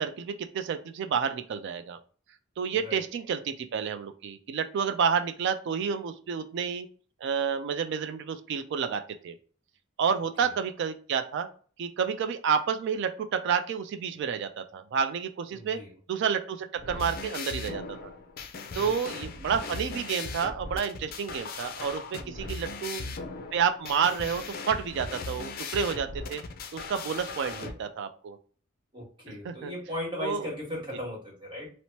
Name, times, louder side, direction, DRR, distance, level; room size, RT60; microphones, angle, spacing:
voice 1, 0.0-2.0 2.6-6.9 7.2-9.3 10.0-11.5 11.8-15.8 16.1-18.0 18.8-23.0 23.5-26.4 26.7-28.4 29.4-29.7 30.2-30.5, right 6 dB, 60° right, 8 dB, 0.3 m, -30 dB
voice 2, 15.5-15.9 18.7-18.9 22.2-22.7 27.5-27.9 28.9-31.7, left 1 dB, 25° right, -4 dB, 1.4 m, -38 dB
sound 1, 16.8-27.7, left 4 dB, 45° left, 0.4 m, -38 dB
3.0 x 2.0 x 2.7 m, 0.42 s
head